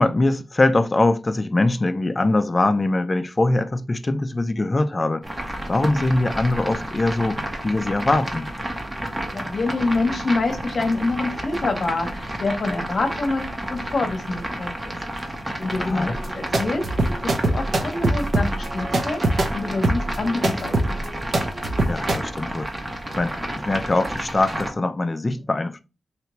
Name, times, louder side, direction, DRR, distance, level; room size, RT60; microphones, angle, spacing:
voice 1, 0.0-8.5 15.8-16.2 21.9-22.7 23.2-25.8, left 2 dB, 25° left, 0.4 m, -22 dB
sound 1, 5.2-24.7, right 1 dB, 20° right, 0.7 m, -31 dB
voice 2, 9.3-15.0 15.6-16.8 17.2-19.2 19.5-20.8, left 3 dB, 50° left, 0.8 m, -26 dB
sound 2, 16.1-22.2, right 1 dB, 60° right, 0.6 m, -23 dB
3.3 x 2.8 x 3.0 m
wide cardioid pair, 125°, 0 cm